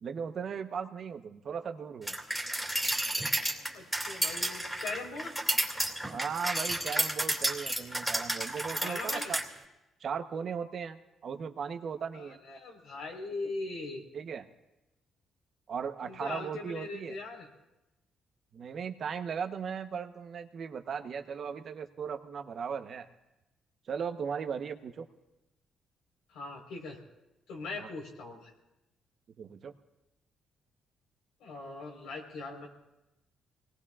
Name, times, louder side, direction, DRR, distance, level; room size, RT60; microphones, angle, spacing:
voice 1, 0.0-2.2 6.1-9.4 10.0-12.4 14.1-14.5 15.7-17.1 18.5-23.1 23.9-25.1 27.8-27.9 29.4-29.7, right 6 dB, 55° right, 8 dB, 1.0 m, -37 dB
sound 1, 2.1-9.4, right 1 dB, ahead, 2.5 m, -32 dB
voice 2, 3.7-5.3 8.8-9.3 12.1-14.0 16.0-17.5 26.3-27.0 27.5-28.5 31.4-32.7, left 3 dB, 90° left, -1 dB, 4.2 m, -40 dB
25.5 x 19.0 x 2.5 m, 0.96 s
cardioid pair, 90°, 0 cm